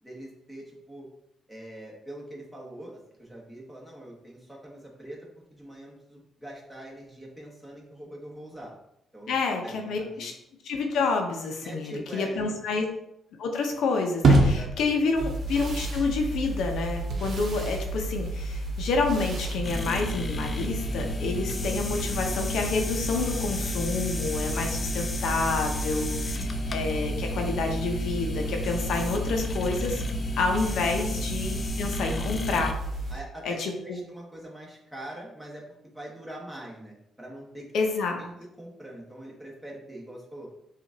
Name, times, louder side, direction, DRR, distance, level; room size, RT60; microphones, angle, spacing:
voice 1, 0.0-1.1 1.5-5.2 5.5-8.7 9.1-9.3 9.6-10.3 11.6-12.6 14.4-15.1 26.0-26.6 33.1-37.7 38.2-38.3 38.6-40.5, right 1 dB, 5° right, -4 dB, 1.3 m, -43 dB
voice 2, 9.3-10.3 10.6-12.9 13.4-30.0 30.4-32.8 33.4-34.0 37.7-38.2, left 4 dB, 80° left, 3 dB, 0.7 m, -29 dB
sound 1, 14.2-20.5, right 2 dB, 55° right, 0.8 m, -28 dB
sound 2, 15.1-33.1, right 2 dB, 40° right, 1.2 m, -33 dB
sound 3, 19.6-32.7, left 2 dB, 30° left, 0.4 m, -34 dB
5.7 x 2.5 x 2.8 m, 0.78 s
cardioid pair, 100°, 0 cm